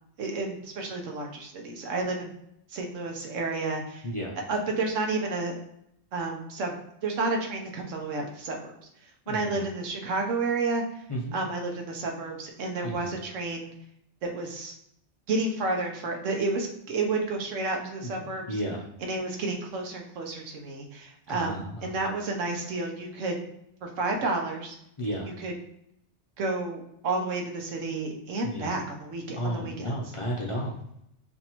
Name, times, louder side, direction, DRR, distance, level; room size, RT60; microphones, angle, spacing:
voice 1, 0.2-2.3 2.7-4.0 4.5-5.5 6.1-6.7 7.0-8.7 9.3-10.8 11.3-13.7 14.2-14.7 15.3-18.5 19.0-23.4 23.8-24.8 25.4-25.5 26.4-29.9, right 3 dB, 85° right, 2 dB, 1.1 m, -31 dB
voice 2, 4.0-4.4 9.3-9.6 11.1-11.4 12.8-13.1 18.0-18.8 21.3-22.0 25.0-25.3 28.4-28.7 29.4-30.7, equal, 35° left, -3 dB, 0.6 m, -33 dB
5.9 x 2.7 x 2.9 m, 0.76 s
omnidirectional pair, 1.3 m